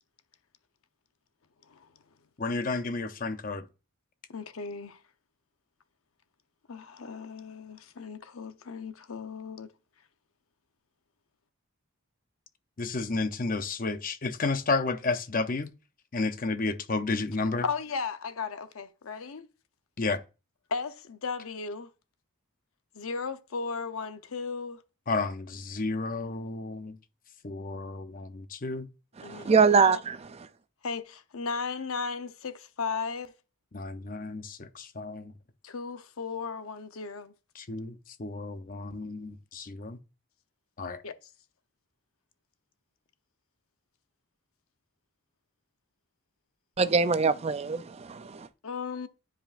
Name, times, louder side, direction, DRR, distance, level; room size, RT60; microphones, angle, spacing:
voice 1, 2.4-3.7 12.8-15.7 16.1-17.6 20.0-20.2 25.1-27.0 27.4-28.9 33.7-35.3 37.6-40.0 40.8-41.0, left 3 dB, 40° left, 0.6 m, -31 dB
voice 2, 4.3-5.0 6.7-9.7 17.6-19.5 20.7-21.9 22.9-24.8 29.2-30.0 30.8-33.3 35.6-37.3 41.0-41.1 48.6-49.1, left 5 dB, 75° left, 0.7 m, -36 dB
voice 3, 29.2-30.2 46.8-48.5, right 5 dB, 30° right, 0.3 m, -23 dB
9.9 x 5.1 x 2.5 m
head